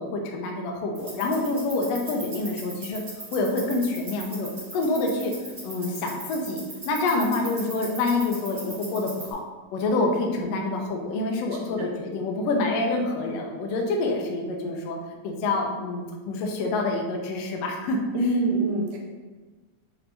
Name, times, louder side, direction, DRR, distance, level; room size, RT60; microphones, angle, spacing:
voice 1, 0.0-3.0 3.3-5.3 5.6-9.4 9.7-15.0 15.2-18.0, left 2 dB, 75° left, 1 dB, 1.6 m, -27 dB
sound 1, 0.9-9.3, right 2 dB, 30° right, 0.9 m, -40 dB
voice 2, 18.1-19.0, right 2 dB, 75° right, -1 dB, 1.6 m, -25 dB
5.9 x 3.3 x 2.7 m, 1.3 s
omnidirectional pair, 3.4 m